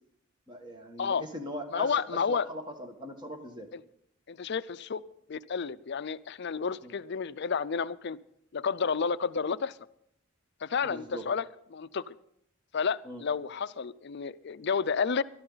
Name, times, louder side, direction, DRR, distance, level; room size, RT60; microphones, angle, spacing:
voice 1, 0.5-3.7 6.8-7.0 10.8-11.2 13.0-13.2, equal, 20° right, 4 dB, 1.5 m, -40 dB
voice 2, 1.7-2.5 4.3-5.0 5.3-8.2 8.5-9.8 10.6-11.5 11.7-12.2 12.7-15.2, left 5 dB, 50° left, 16 dB, 0.5 m, -31 dB
20.5 x 12.0 x 4.0 m, 0.73 s
head